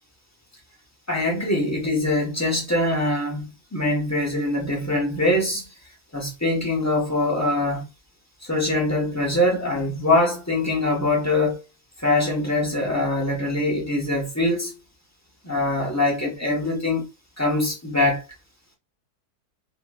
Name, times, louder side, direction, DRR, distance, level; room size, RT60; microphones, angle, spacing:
voice 1, 1.1-5.6 6.1-7.9 8.4-11.6 12.0-14.8 15.4-17.1 17.4-18.2, left 2 dB, 15° left, 0.8 m, -23 dB
3.0 x 2.9 x 2.3 m
omnidirectional pair, 1.7 m